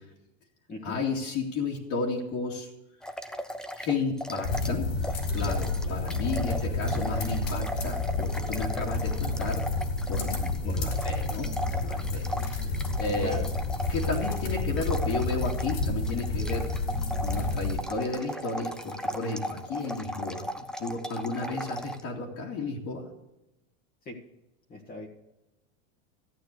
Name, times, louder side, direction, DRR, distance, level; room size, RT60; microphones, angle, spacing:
voice 1, 0.8-2.7 3.8-4.9 5.3-9.7 10.1-13.4 13.9-16.7 17.2-23.1, left 3 dB, 45° left, -4 dB, 2.5 m, -33 dB
sound 1, 3.0-4.8 5.0-22.0, equal, ahead, 0.6 m, -37 dB
sound 2, 4.4-17.8, left 2 dB, 70° left, 4.7 m, -30 dB
voice 2, 24.7-25.1, left 2 dB, 25° left, -1 dB, 1.7 m, -39 dB
14.5 x 8.7 x 6.7 m, 0.93 s
supercardioid pair, 140°, 39 cm